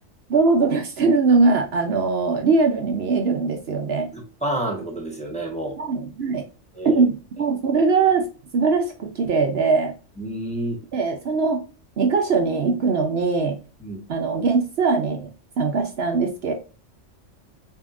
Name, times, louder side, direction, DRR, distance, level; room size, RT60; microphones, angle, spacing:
voice 1, 0.3-4.1 5.8-6.4 6.8-8.3 8.5-9.9 10.9-11.6 12.0-13.6 14.1-15.3 15.6-16.5, right 4 dB, 60° right, 4 dB, 0.9 m, -21 dB
voice 2, 4.1-5.7 6.7-7.0 10.2-10.8 13.8-14.0, right 1 dB, 5° left, -1 dB, 1.1 m, -29 dB
7.1 x 2.8 x 2.4 m, 0.34 s
omnidirectional pair, 1.2 m